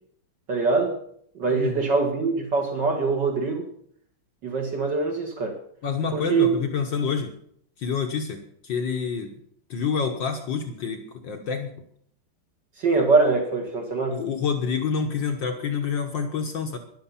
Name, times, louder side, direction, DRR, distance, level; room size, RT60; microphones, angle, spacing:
voice 1, 0.5-0.9 1.4-3.7 4.4-5.6 6.1-6.6 12.8-14.2, right 4 dB, 60° right, 3 dB, 2.4 m, -23 dB
voice 2, 1.5-1.8 5.8-7.3 7.8-9.3 9.7-11.8 14.1-16.8, left 6 dB, 65° left, 4 dB, 1.9 m, -28 dB
13.0 x 11.5 x 5.8 m, 0.65 s
omnidirectional pair, 2.3 m